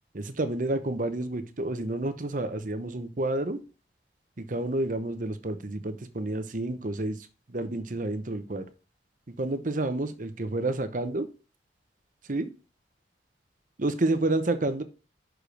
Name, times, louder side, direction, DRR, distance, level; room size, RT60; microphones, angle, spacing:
voice 1, 0.1-3.6 4.4-8.7 9.3-11.3 12.3-12.5 13.8-14.8, right 2 dB, 50° right, 10 dB, 0.9 m, -30 dB
6.3 x 5.1 x 5.1 m, 0.32 s
head